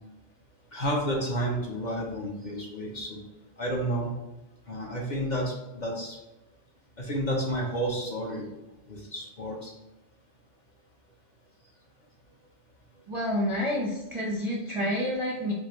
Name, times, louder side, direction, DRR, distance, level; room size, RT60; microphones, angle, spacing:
voice 1, 0.7-3.2 3.6-4.1 4.7-6.2 7.0-8.5 8.9-9.7, right 1 dB, 45° left, -3 dB, 0.8 m, -31 dB
voice 2, 13.1-15.5, equal, 35° right, -4 dB, 0.5 m, -29 dB
4.7 x 2.5 x 3.0 m, 0.97 s
omnidirectional pair, 1.2 m